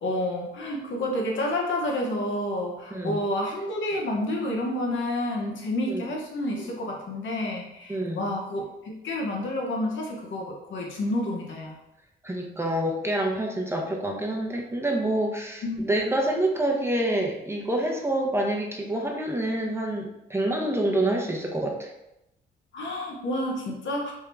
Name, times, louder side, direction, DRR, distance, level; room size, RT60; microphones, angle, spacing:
voice 1, 0.0-11.7 15.6-16.1 22.7-24.1, left 1 dB, 70° left, 0 dB, 1.0 m, -29 dB
voice 2, 2.9-3.2 5.9-6.1 7.9-8.2 12.2-21.9, right 1 dB, 10° right, 0 dB, 0.8 m, -27 dB
3.6 x 2.8 x 3.3 m, 0.87 s
cardioid pair, 75°, 21 cm